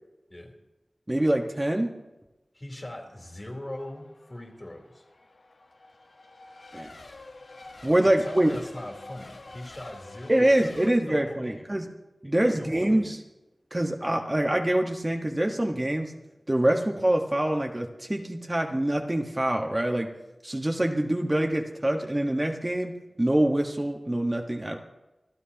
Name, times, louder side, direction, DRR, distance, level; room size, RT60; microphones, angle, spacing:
voice 1, 1.1-1.9 6.7-6.9 7.8-8.5 10.3-11.9 12.2-13.2 13.7-16.1 16.5-20.1 20.4-24.8, right 1 dB, 25° right, 2 dB, 1.3 m, -25 dB
voice 2, 2.5-5.0 8.2-11.7 12.4-13.1, left 1 dB, 35° left, 1 dB, 3.5 m, -40 dB
Race car auto racing / Accelerating revving vroom / Mechanisms, 3.1-10.9, left 2 dB, 85° left, 1.7 m, -48 dB
27.5 x 12.5 x 2.9 m, 1.0 s
wide cardioid pair, 45°, 0 cm